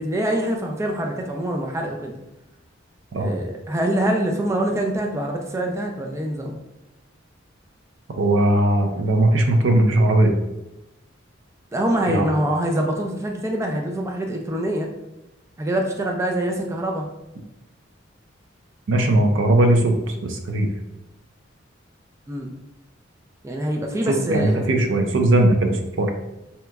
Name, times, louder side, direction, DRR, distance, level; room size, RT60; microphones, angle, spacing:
voice 1, 0.0-2.1 3.2-6.6 11.7-14.9 15.6-17.1 22.3-22.5 23.4-24.7, right 1 dB, 15° right, 1 dB, 0.3 m, -25 dB
voice 2, 8.2-10.4 12.1-12.3 18.9-20.7 24.1-26.1, right 1 dB, 70° right, 4 dB, 0.5 m, -19 dB
2.9 x 2.2 x 3.4 m, 0.94 s
head